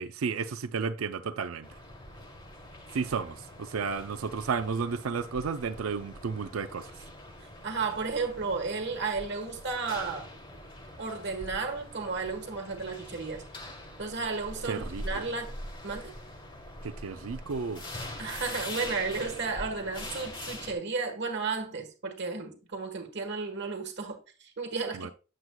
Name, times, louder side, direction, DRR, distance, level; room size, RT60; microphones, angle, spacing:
voice 1, 0.0-1.7 2.9-7.1 14.6-15.2 16.8-17.8 24.9-25.1, right 5 dB, 80° right, 0.5 m, -33 dB
sound 1, 1.6-20.7, left 1 dB, 25° left, 1.4 m, -43 dB
voice 2, 7.6-10.3 11.0-13.4 14.0-15.5 15.8-16.1 18.2-25.1, right 4 dB, 55° right, 1.3 m, -33 dB
7.9 x 7.4 x 2.2 m
head